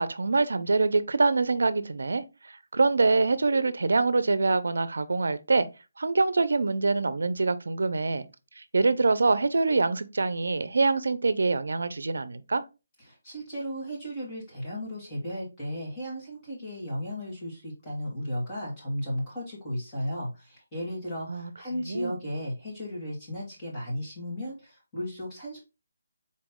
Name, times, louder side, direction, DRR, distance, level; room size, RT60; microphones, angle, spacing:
voice 1, 0.0-5.7 6.0-8.2 8.6-12.6 21.3-21.5 21.9-22.2, right 3 dB, 80° right, 0.6 m, -25 dB
voice 2, 13.0-25.6, equal, 15° left, 1.7 m, -35 dB
4.2 x 3.1 x 3.6 m
hypercardioid pair, 170°, 0 cm